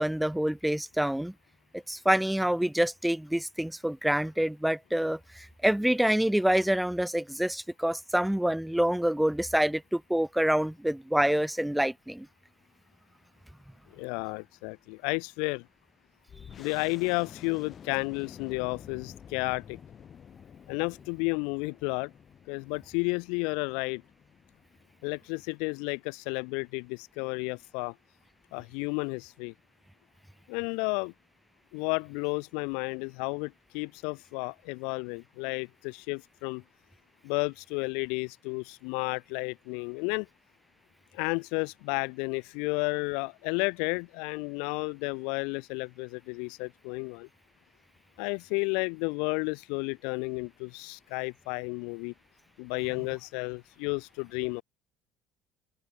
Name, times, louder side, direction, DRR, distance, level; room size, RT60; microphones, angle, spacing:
voice 1, 0.0-1.3 1.9-12.3, right 1 dB, 5° right, 2.4 m, -27 dB
voice 2, 14.0-15.6 16.6-19.8 20.7-22.1 22.5-24.0 25.0-27.9 28.5-29.5 30.5-31.1 31.7-36.6 37.2-40.3 41.1-47.3 48.2-52.1 52.6-54.6, left 35 dB, 75° left, 0.9 m, -32 dB
sound 1, 16.3-25.5, left 8 dB, 45° left, 8.0 m, -50 dB
hypercardioid pair, 70°, 0 cm